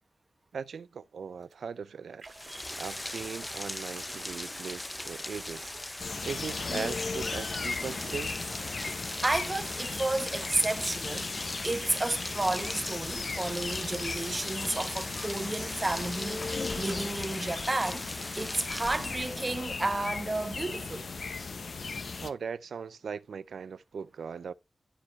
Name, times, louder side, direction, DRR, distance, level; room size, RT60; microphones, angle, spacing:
voice 1, 0.5-5.7 6.2-8.4 22.2-24.5, right 6 dB, 70° right, 0.4 m, -39 dB
sound 1, 1.4-1.5 2.2-18.1, right 3 dB, 40° right, 1.5 m, -52 dB
Rain, 2.3-19.7, left 1 dB, 15° left, 0.4 m, -39 dB
sound 2, 6.0-22.3, left 4 dB, 50° left, 0.8 m, -37 dB
voice 2, 9.2-21.1, right 2 dB, 20° right, 0.9 m, -32 dB
11.0 x 4.7 x 4.4 m
wide cardioid pair, 180°, 0 cm